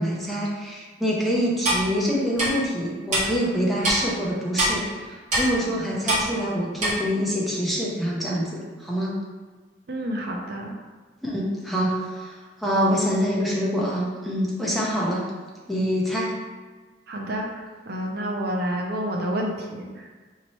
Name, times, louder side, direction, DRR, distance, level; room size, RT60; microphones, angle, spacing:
voice 1, 0.0-9.2 11.2-15.3 15.7-16.3, equal, ahead, -5 dB, 0.6 m, -25 dB
Clock, 1.6-1.8 2.4-2.5 3.1-3.2 3.8-4.0 4.6-4.7 5.3-5.5 6.1-6.2 6.8-6.9, right 1 dB, 40° right, 1.3 m, -22 dB
voice 2, 9.9-10.8 17.1-20.1, equal, 55° right, 1 dB, 0.5 m, -29 dB
4.2 x 2.8 x 3.0 m, 1.4 s
head